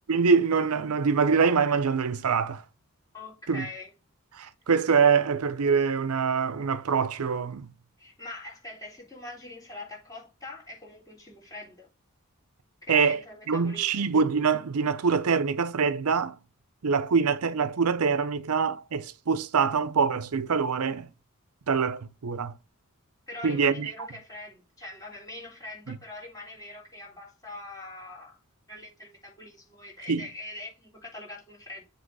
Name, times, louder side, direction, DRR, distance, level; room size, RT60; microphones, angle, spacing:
voice 1, 0.1-2.6 3.5-3.7 4.3-7.7 12.9-13.2 13.5-16.4 16.8-21.1 21.7-22.5 23.4-24.1 25.9-26.0 30.1-30.3, right 5 dB, 80° right, 0.6 m, -24 dB
voice 2, 3.1-3.9 8.0-11.9 12.8-14.1 23.3-28.4 28.7-31.9, left 2 dB, 15° left, 3.6 m, -43 dB
7.5 x 3.5 x 6.1 m
head